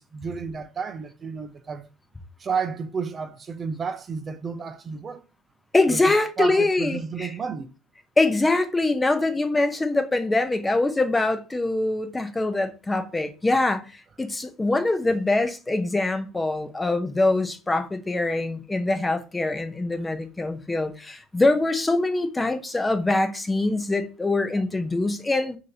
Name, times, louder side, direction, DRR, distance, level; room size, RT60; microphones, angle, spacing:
voice 1, 0.0-1.9 2.4-5.2 5.9-6.0 6.4-7.7 15.0-15.2 24.5-24.6, right 5 dB, 35° right, 0.6 m, -31 dB
voice 2, 5.7-7.3 8.2-13.8 14.2-25.6, left 2 dB, 15° left, 0.8 m, -23 dB
6.3 x 2.9 x 2.8 m
hypercardioid pair, 75°, 0 cm